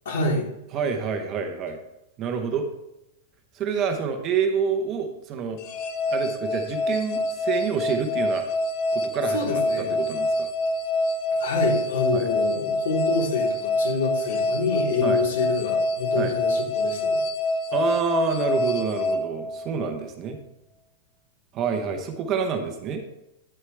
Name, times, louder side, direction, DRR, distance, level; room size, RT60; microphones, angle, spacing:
voice 1, 0.1-0.5 9.3-9.9 11.4-17.2, left 4 dB, 75° left, -2 dB, 3.7 m, -27 dB
voice 2, 0.7-1.8 2.2-2.7 3.5-5.6 6.1-8.5 8.9-10.5 12.1-12.3 15.0-15.2 16.1-16.3 17.7-20.4 21.5-23.0, right 6 dB, 20° right, 5 dB, 0.8 m, -28 dB
sound 1, 5.6-20.0, left 2 dB, 35° left, 0.8 m, -26 dB
9.7 x 8.1 x 3.4 m, 0.89 s
supercardioid pair, 180°, 0 cm